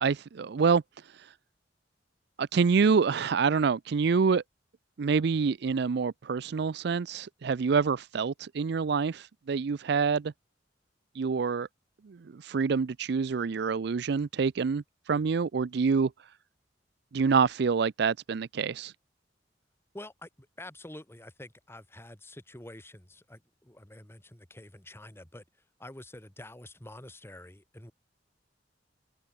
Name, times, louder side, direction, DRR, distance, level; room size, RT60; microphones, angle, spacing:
voice 1, 0.0-0.8 2.4-4.4 5.0-10.3 11.2-11.7 12.1-14.8 15.1-16.1 17.1-18.9, right 5 dB, 60° right, 0.4 m, -26 dB
voice 2, 19.9-25.4 25.8-27.9, left 1 dB, 15° left, 1.6 m, -47 dB
open air
head